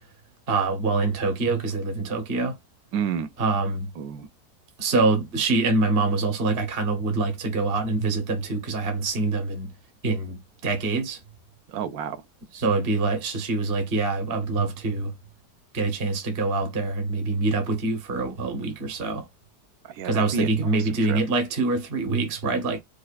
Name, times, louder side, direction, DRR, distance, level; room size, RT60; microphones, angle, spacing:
voice 1, 0.5-2.5 3.4-3.9 4.8-9.7 10.0-10.4 10.6-11.2 12.5-15.1 15.7-19.3 20.0-22.8, right 3 dB, 40° right, 1.0 m, -25 dB
voice 2, 2.9-3.3 4.0-4.3 11.7-12.2 19.8-21.2, right 7 dB, 70° right, 0.9 m, -30 dB
4.9 x 2.2 x 2.3 m
omnidirectional pair, 1.8 m